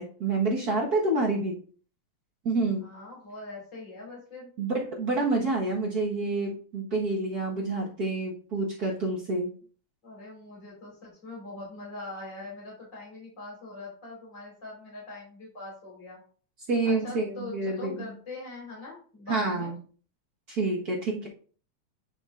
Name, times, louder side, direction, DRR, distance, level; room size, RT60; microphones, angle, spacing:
voice 1, 0.0-1.6 2.4-2.8 4.6-9.5 16.7-18.1 19.3-19.7 20.5-21.3, right 2 dB, 45° right, -2 dB, 1.4 m, -28 dB
voice 2, 2.8-4.5 10.0-16.2 16.8-19.7 20.8-21.1, left 2 dB, 25° left, -4 dB, 4.4 m, -42 dB
10.0 x 5.8 x 2.5 m, 0.41 s
omnidirectional pair, 3.4 m